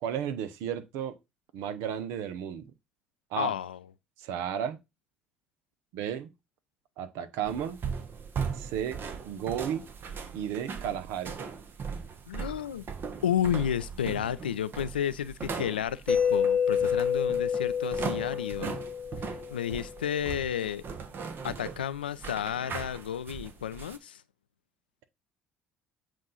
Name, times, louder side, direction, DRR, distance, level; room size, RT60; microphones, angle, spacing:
voice 1, 0.0-1.2 1.5-2.7 3.3-3.5 4.2-4.8 5.9-6.3 7.0-7.8 8.5-9.9 10.3-11.4, right 9 dB, 65° right, 0.7 m, -33 dB
voice 2, 3.4-3.8 12.3-12.9 13.2-18.8 19.2-20.8 21.4-24.2, left 9 dB, 85° left, 0.3 m, -32 dB
sound 1, 7.4-24.0, right 6 dB, 45° right, 1.0 m, -39 dB
Mallet percussion, 16.1-19.8, left 7 dB, 20° left, 0.8 m, -28 dB
7.5 x 2.6 x 5.5 m
hypercardioid pair, 55°, 5 cm